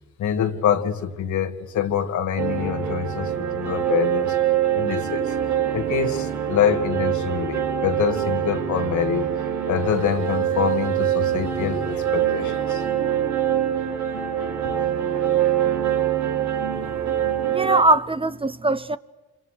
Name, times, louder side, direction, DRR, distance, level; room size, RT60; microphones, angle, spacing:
voice 1, 0.2-4.4 4.7-5.3 5.7-9.3 9.7-12.8, left 9 dB, 70° left, 2.3 m, -25 dB
sound 1, 2.4-17.8, right 10 dB, 80° right, 4.1 m, -24 dB
sound 2, 3.2-9.0 9.8-15.4, right 2 dB, 35° right, 3.9 m, -40 dB
voice 2, 17.5-19.0, right 2 dB, 20° right, 0.8 m, -21 dB
28.0 x 26.0 x 6.7 m
cardioid pair, 90°, 30 cm